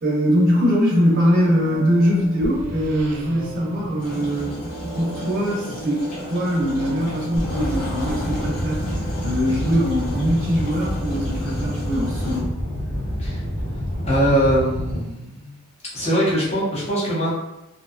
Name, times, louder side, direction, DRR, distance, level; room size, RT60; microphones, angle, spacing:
voice 1, 0.0-4.6 5.0-12.6, equal, 40° right, -4 dB, 0.5 m, -22 dB
sound 1, 0.6-10.6 13.6-15.5, right 2 dB, 90° right, 0.4 m, -39 dB
sound 2, 4.0-12.4, equal, 75° left, 1.0 m, -33 dB
sound 3, 7.4-15.0, equal, 60° left, 1.3 m, -27 dB
voice 2, 14.0-15.5 15.9-17.3, equal, 30° left, -7 dB, 0.9 m, -21 dB
2.6 x 2.2 x 2.4 m, 0.93 s
head